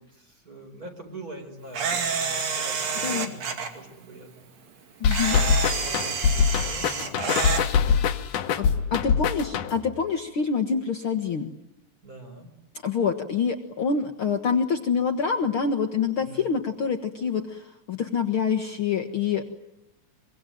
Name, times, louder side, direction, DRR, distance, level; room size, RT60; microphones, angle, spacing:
voice 1, 0.2-4.6 5.3-8.3 8.7-8.9 12.0-12.5 16.2-16.5, right 2 dB, 30° right, 4 dB, 5.3 m, -44 dB
Camera, 1.7-3.7 5.1-7.6, right 5 dB, 60° right, 3.8 m, -28 dB
sound 1, 5.0-10.0, left 7 dB, 90° left, 2.8 m, -24 dB
voice 2, 5.0-5.4 8.6-11.5 12.8-19.5, left 6 dB, 50° left, 5 dB, 2.0 m, -26 dB
24.5 x 24.5 x 9.2 m, 0.90 s
omnidirectional pair, 3.4 m